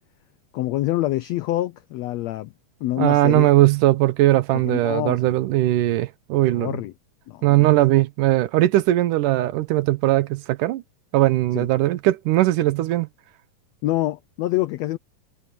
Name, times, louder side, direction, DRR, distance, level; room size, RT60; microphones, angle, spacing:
voice 1, 0.5-2.5 2.8-3.5 4.5-5.3 6.5-6.9 7.3-7.7 11.5-11.7 13.8-15.0, left 15 dB, 85° left, 1.5 m, -26 dB
voice 2, 3.0-6.8 7.4-10.8 11.1-13.1, right 16 dB, 80° right, 2.4 m, -19 dB
omnidirectional pair, 3.8 m